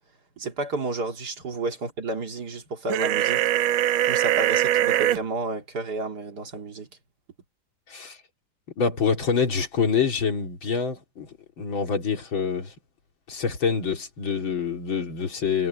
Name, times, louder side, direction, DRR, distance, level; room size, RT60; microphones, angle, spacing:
voice 1, 0.4-3.4 4.1-6.9, right 3 dB, 50° right, 2.8 m, -31 dB
sound 1, 2.9-5.2, right 13 dB, 80° right, 1.5 m, -22 dB
voice 2, 7.9-8.2 8.8-12.7 13.3-15.7, left 6 dB, 75° left, 3.5 m, -26 dB
omnidirectional pair, 2.2 m